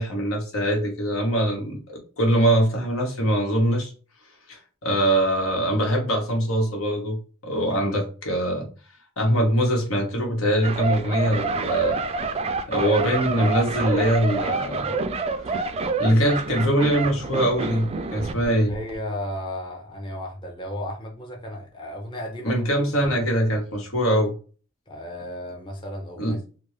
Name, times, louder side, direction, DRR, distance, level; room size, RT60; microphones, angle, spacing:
voice 1, 0.0-3.9 4.5-7.2 7.4-8.7 9.2-12.0 12.7-14.9 15.5-15.7 16.0-18.7 22.4-24.3 26.2-26.4, right 1 dB, 90° left, 1.3 m, -23 dB
sound 1, 10.6-18.4 18.7-18.9, right 3 dB, 30° right, 0.3 m, -28 dB
voice 2, 18.4-22.9 24.9-26.6, left 1 dB, 25° left, 0.7 m, -34 dB
3.5 x 2.3 x 3.1 m
head